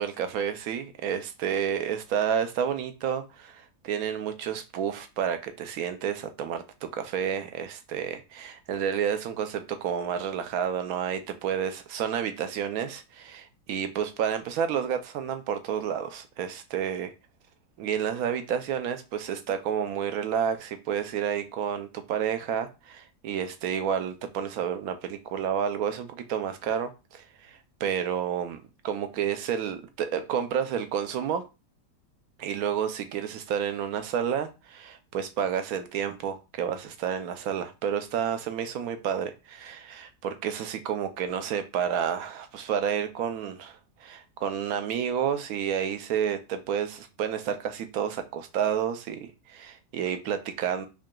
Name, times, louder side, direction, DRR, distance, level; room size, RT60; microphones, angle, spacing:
voice 1, 0.0-17.1 17.8-31.4 32.4-50.9, right 8 dB, 70° right, 1.0 m, -30 dB
4.8 x 2.8 x 2.2 m
omnidirectional pair, 1.7 m